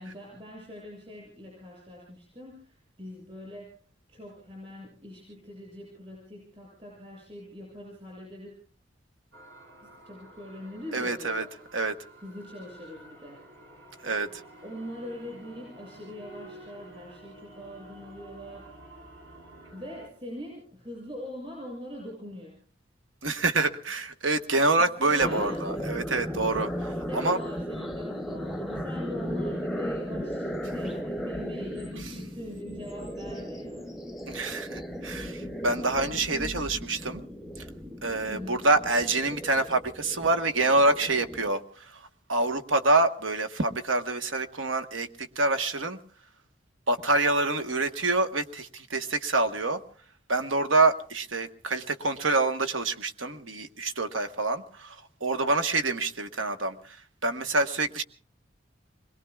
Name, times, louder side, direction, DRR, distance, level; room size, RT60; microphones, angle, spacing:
voice 1, 0.0-3.8 4.1-8.5 9.8-11.5 12.2-13.4 14.2-14.3 14.6-19.0 19.7-22.6 24.8-25.7 26.8-34.0 36.3-36.5 38.3-38.7, left 1 dB, 30° right, -3 dB, 6.9 m, -42 dB
sound 1, 9.3-20.1, right 1 dB, 65° right, 6.3 m, -50 dB
voice 2, 10.9-11.4 11.7-11.9 14.0-14.3 23.2-27.4 34.3-37.2 38.0-42.0 42.3-46.0 46.9-49.8 50.3-57.0 57.2-58.0, right 2 dB, 85° right, 8 dB, 1.3 m, -26 dB
sound 2, 25.2-41.5, equal, ahead, 0.8 m, -36 dB
28.0 x 22.0 x 2.4 m, 0.42 s
head